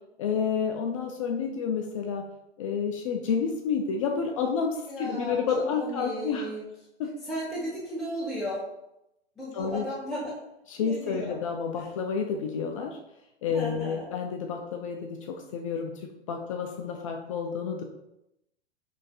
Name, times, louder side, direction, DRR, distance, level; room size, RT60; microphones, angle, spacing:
voice 1, 0.2-2.2 2.6-6.5 7.0-7.1 9.5-9.9 10.7-13.0 13.4-17.8, left 6 dB, 30° left, 3 dB, 0.4 m, -30 dB
voice 2, 4.9-5.4 5.8-6.6 7.3-8.6 9.4-10.4 10.9-11.3 13.5-14.1, equal, ahead, -8 dB, 0.9 m, -34 dB
6.3 x 3.2 x 2.3 m, 0.86 s
figure-of-eight pair, 100°, 34 cm